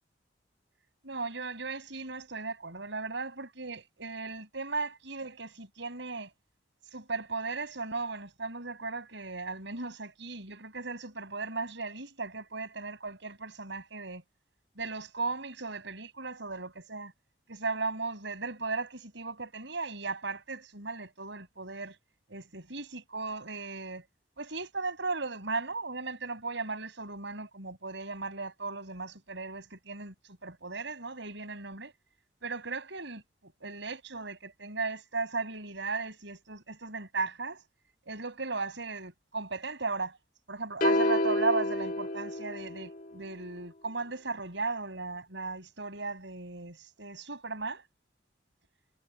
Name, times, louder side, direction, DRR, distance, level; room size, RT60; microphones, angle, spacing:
voice 1, 1.0-6.3 6.9-14.2 14.7-17.1 17.5-21.9 22.3-24.1 24.4-31.9 32.4-37.6 38.1-40.2 40.5-47.8, right 3 dB, 70° right, 6.7 m, -36 dB
sound 1, 40.8-43.1, left 1 dB, 50° left, 1.5 m, -29 dB
head